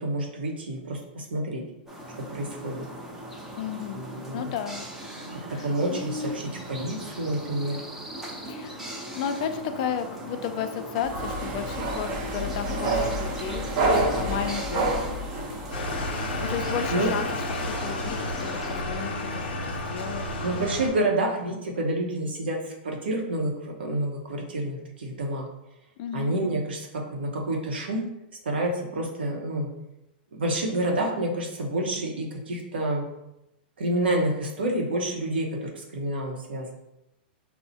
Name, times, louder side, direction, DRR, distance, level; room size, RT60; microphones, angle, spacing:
voice 1, 0.0-1.6 2.3-2.8 3.9-4.5 5.6-7.8 16.9-17.1 20.4-25.5 26.1-28.0 28.4-29.7 30.3-33.0 33.8-36.7, right 1 dB, 90° right, 0 dB, 0.8 m, -28 dB
sound 1, 1.9-18.8, right 1 dB, 5° right, 0.5 m, -39 dB
voice 2, 3.5-4.0 4.3-4.8 5.5-6.4 8.5-8.8 9.2-13.6 14.2-15.0 16.4-17.3 17.6-20.3 26.0-26.3, left 8 dB, 50° left, 8 dB, 0.4 m, -33 dB
sound 2, 11.0-17.8, right 2 dB, 45° right, 0.8 m, -29 dB
sound 3, 15.7-20.9, left 2 dB, 70° left, 0.7 m, -31 dB
4.3 x 2.0 x 2.7 m, 0.88 s
hypercardioid pair, 130°, 5 cm